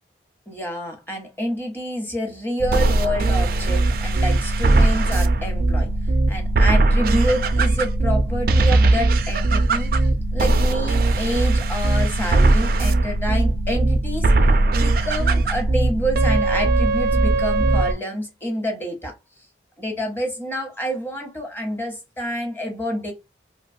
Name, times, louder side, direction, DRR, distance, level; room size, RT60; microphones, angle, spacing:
voice 1, 0.5-5.9 6.3-9.9 10.3-14.3 14.7-19.1 19.8-23.1, equal, 10° left, 0.9 m, -28 dB
sound 1, 2.6-17.9, right 2 dB, 50° right, 0.3 m, -19 dB
2.8 x 2.2 x 2.5 m
head